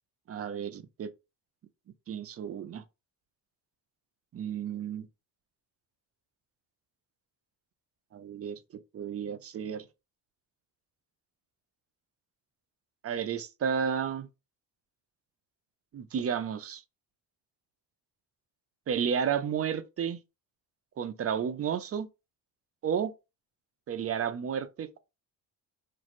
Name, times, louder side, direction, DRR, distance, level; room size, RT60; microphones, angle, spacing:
voice 1, 0.3-1.1 2.1-2.8 4.3-5.1 8.1-8.6 8.9-9.9 13.0-14.3 15.9-16.8 18.9-20.2 21.0-22.1 22.8-23.1 23.9-25.0, right 7 dB, 35° right, 0.4 m, -32 dB
2.9 x 2.5 x 2.5 m
cardioid pair, 85°, 44 cm